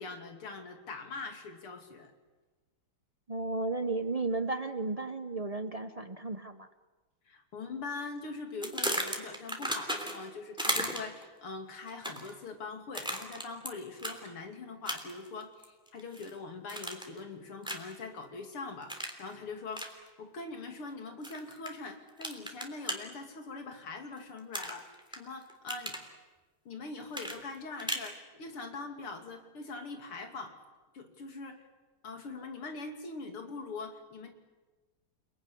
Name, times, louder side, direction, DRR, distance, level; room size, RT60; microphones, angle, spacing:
voice 1, 0.0-2.1 7.3-19.8 20.2-26.0 26.7-30.5 30.9-31.6 32.0-34.3, left 3 dB, 90° left, 5 dB, 3.6 m, -42 dB
voice 2, 3.3-6.7, right 3 dB, 55° right, 9 dB, 0.4 m, -34 dB
sound 1, 8.6-10.3 10.6-11.2 11.9-12.3 12.9-13.7 14.0-14.2 14.9-15.3 15.6-16.3 16.7-17.2 17.6-18.0 18.9-19.2 19.7-19.9 21.2-21.7 22.2-23.0 24.5-25.2 25.5-26.1 27.1-28.1, equal, ahead, 3.1 m, -35 dB
29.5 x 20.0 x 10.0 m, 1.3 s
omnidirectional pair, 2.3 m